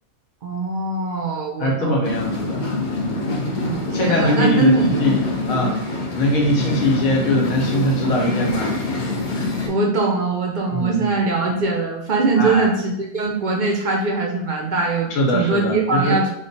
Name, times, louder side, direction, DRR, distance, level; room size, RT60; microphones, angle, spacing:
voice 1, 0.4-2.1 3.6-5.0 9.6-16.3, right 3 dB, 60° right, -1 dB, 0.5 m, -21 dB
voice 2, 1.6-2.6 3.0-3.3 3.9-5.2 5.5-5.8 6.1-8.7 10.7-11.1 12.4-12.7 15.1-16.2, left 1 dB, 85° left, -1 dB, 1.3 m, -21 dB
sound 1, 2.0-9.7, left 2 dB, 55° left, 0.5 m, -25 dB
3.1 x 2.2 x 4.0 m, 0.80 s
omnidirectional pair, 1.4 m